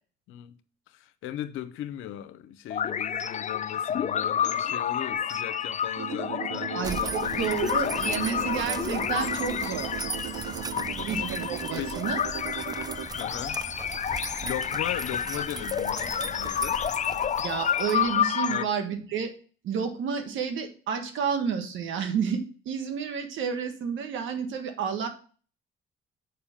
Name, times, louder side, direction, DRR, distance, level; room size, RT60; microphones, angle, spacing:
voice 1, 0.9-8.6 10.8-11.1 11.8-12.0 13.1-13.6 14.4-16.8 18.4-18.7, left 12 dB, 80° left, 0.7 m, -38 dB
sound 1, 2.7-18.6, left 8 dB, 35° left, 0.4 m, -30 dB
sound 2, 6.0-13.1, right 15 dB, 90° right, 0.4 m, -38 dB
voice 2, 6.7-9.9 11.1-12.2 17.4-19.3 19.6-25.1, right 7 dB, 75° right, 1.6 m, -30 dB
sound 3, 6.8-18.3, right 4 dB, 20° right, 0.4 m, -39 dB
7.0 x 5.2 x 5.7 m
supercardioid pair, 70°, 20 cm